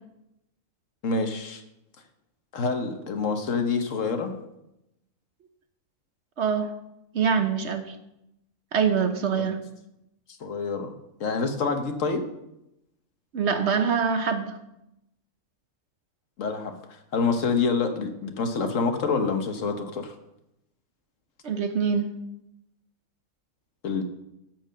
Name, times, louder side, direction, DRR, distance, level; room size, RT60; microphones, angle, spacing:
voice 1, 1.0-1.6 2.5-4.4 9.3-9.5 10.4-10.9 11.2-12.3 16.4-16.7 17.1-20.2 23.8-24.0, left 4 dB, 65° left, 7 dB, 1.3 m, -27 dB
voice 2, 6.4-6.7 7.1-7.9 8.7-9.6 13.3-14.5 21.4-22.1, right 6 dB, 55° right, 7 dB, 0.9 m, -24 dB
10.5 x 4.5 x 7.5 m, 0.87 s
omnidirectional pair, 1.5 m